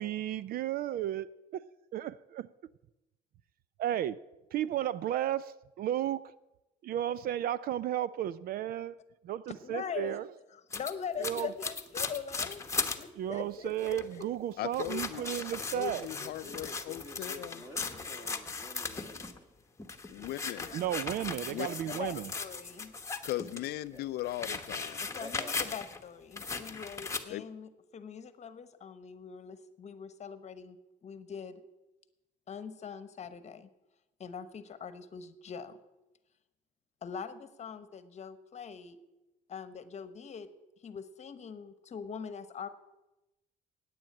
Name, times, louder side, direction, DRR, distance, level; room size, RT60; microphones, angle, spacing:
voice 1, 0.0-1.6 1.9-2.5 3.8-4.2 4.5-6.3 6.8-9.0 9.2-10.3 11.2-11.5 13.2-16.1 20.7-22.3, right 11 dB, 60° right, 18 dB, 0.4 m, -33 dB
voice 2, 9.6-10.2 10.5-12.6 13.0-14.2 20.6-21.2 21.6-23.0 25.0-30.8 31.0-31.6 32.5-33.7 34.2-35.8 37.0-39.0 39.5-40.5 40.8-42.7, left 7 dB, 40° left, 12 dB, 1.0 m, -42 dB
sound 1, 10.7-13.0 13.5-13.6 13.8-14.2 14.7-19.4 19.8-23.7 24.0-26.0 26.4-27.2, left 4 dB, 15° left, 1.1 m, -38 dB
voice 3, 14.6-15.2 15.7-17.5 20.1-20.7 21.5-21.7 23.2-25.1 26.7-26.8 27.3-27.4, left 15 dB, 70° left, 15 dB, 0.4 m, -38 dB
voice 4, 16.2-19.5 20.1-21.4 23.9-24.1 25.2-25.7, left 1 dB, 25° right, 3 dB, 2.6 m, -50 dB
10.5 x 9.2 x 8.5 m, 1.0 s
cardioid pair, 110°, 17 cm